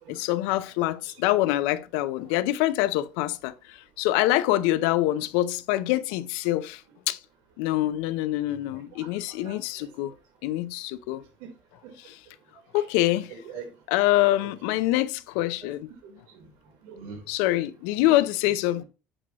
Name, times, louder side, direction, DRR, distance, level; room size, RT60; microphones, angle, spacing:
voice 1, 0.1-6.8 7.1-7.2 7.6-10.1 10.4-11.2 12.0-12.2 12.7-13.3 13.9-15.9 17.3-18.8, left 15 dB, 80° left, 0.5 m, -25 dB
voice 2, 8.4-9.1 9.4-9.9 11.4-11.5 11.8-11.9 13.3-13.7 14.4-14.8 15.6-15.7 16.0-16.5 16.8-17.5 18.0-18.1, right 6 dB, 80° right, 3.5 m, -44 dB
8.8 x 6.2 x 2.9 m
cardioid pair, 175°, 5 cm